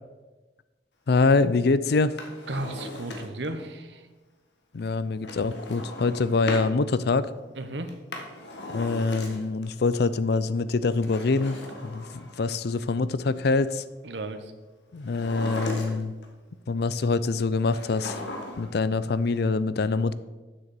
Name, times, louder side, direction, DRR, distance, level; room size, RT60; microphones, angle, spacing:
voice 1, 1.1-2.2 4.7-7.3 8.7-13.8 14.9-16.1 16.7-18.2 18.6-20.1, left 3 dB, 65° left, 15 dB, 0.5 m, -25 dB
Drawer open or close, 2.0-3.6 5.2-6.7 7.9-9.7 10.9-12.6 15.0-16.3 17.7-18.8 19.1-19.2, left 2 dB, 80° left, 1.5 m, -37 dB
voice 2, 2.5-4.1 7.6-7.9 14.0-14.5, right 2 dB, 85° right, 8 dB, 1.1 m, -34 dB
7.6 x 6.6 x 7.6 m, 1.2 s
head